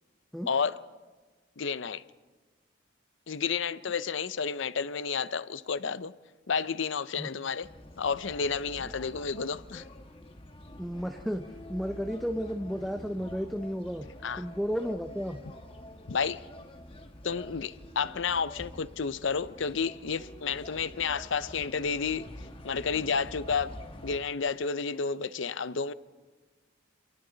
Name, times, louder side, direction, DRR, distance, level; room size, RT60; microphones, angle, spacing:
voice 1, 0.5-0.8 1.6-2.0 3.3-6.1 6.5-7.7 8.0-9.8 14.2-14.4 16.1-16.4 17.2-22.3 22.6-23.7 24.0-25.9, left 5 dB, 65° left, 0.6 m, -31 dB
sound 1, 7.6-24.2, left 1 dB, 25° left, 1.3 m, -47 dB
voice 2, 10.8-14.1 14.3-15.4, equal, ahead, 0.6 m, -33 dB
27.0 x 27.0 x 4.0 m
head